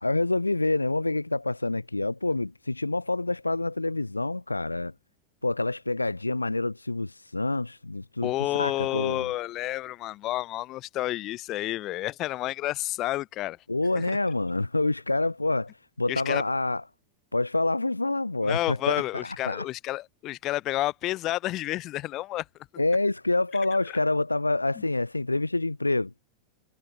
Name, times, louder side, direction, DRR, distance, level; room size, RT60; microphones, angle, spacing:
voice 1, 0.0-4.9 5.4-9.3 13.7-15.7 16.0-16.8 17.3-19.6 22.8-26.1, left 2 dB, 85° left, 0.7 m, -27 dB
voice 2, 8.2-13.6 13.9-14.2 16.1-16.4 18.4-22.4, left 16 dB, 35° left, 0.8 m, -30 dB
figure-of-eight pair, 90°, 0 cm